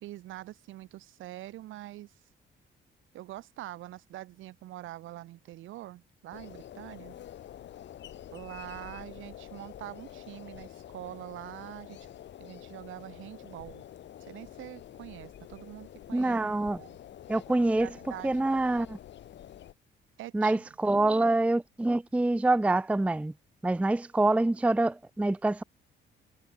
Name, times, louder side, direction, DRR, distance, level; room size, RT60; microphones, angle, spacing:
voice 1, 0.0-2.1 3.1-7.2 8.3-12.1 12.4-13.8 14.2-17.0 17.8-18.6 20.2-20.6 20.9-21.4, right 15 dB, 80° right, 0.8 m, -44 dB
sound 1, 6.3-19.7, left 11 dB, 65° left, 1.2 m, -47 dB
voice 2, 16.1-16.8 17.3-17.9 18.2-19.0 20.3-23.3 23.6-25.6, right 2 dB, 5° right, 0.5 m, -26 dB
cardioid pair, 90°, 20 cm